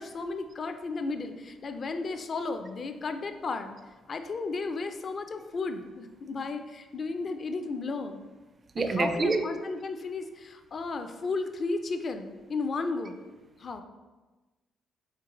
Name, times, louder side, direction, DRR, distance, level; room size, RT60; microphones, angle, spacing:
voice 1, 0.0-3.8 4.1-8.2 8.8-13.2 13.6-13.8, left 3 dB, 45° left, 8 dB, 0.4 m, -34 dB
voice 2, 8.8-9.4, right 3 dB, 40° right, 7 dB, 0.4 m, -26 dB
4.5 x 3.2 x 3.7 m, 1.2 s
cardioid pair, 90°, 0 cm